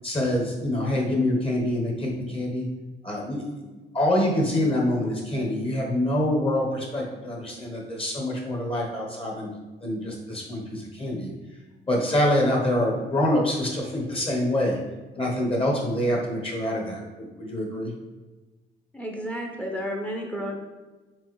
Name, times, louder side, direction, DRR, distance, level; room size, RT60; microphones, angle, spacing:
voice 1, 0.0-2.7 3.0-9.5 9.8-11.3 11.9-14.8 15.2-17.9, left 1 dB, 30° left, -1 dB, 1.0 m, -26 dB
voice 2, 18.9-20.6, equal, 5° left, 1 dB, 0.7 m, -31 dB
4.5 x 3.5 x 3.1 m, 1.2 s
cardioid pair, 90°, 20 cm